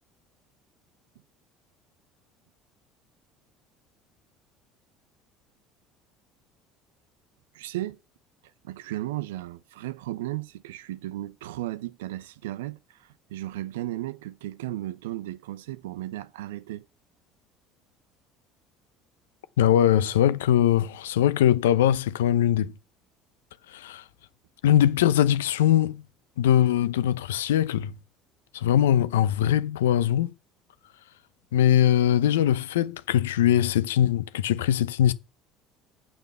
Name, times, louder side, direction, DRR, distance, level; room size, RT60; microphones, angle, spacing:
voice 1, 7.5-8.0 8.6-16.8, right 15 dB, 80° right, 0.6 m, -35 dB
voice 2, 19.6-22.7 23.7-24.0 24.6-26.0 26.4-27.9 28.5-30.3 31.5-35.1, left 11 dB, 80° left, 0.7 m, -21 dB
7.8 x 6.9 x 6.8 m
hypercardioid pair, 65°, 0 cm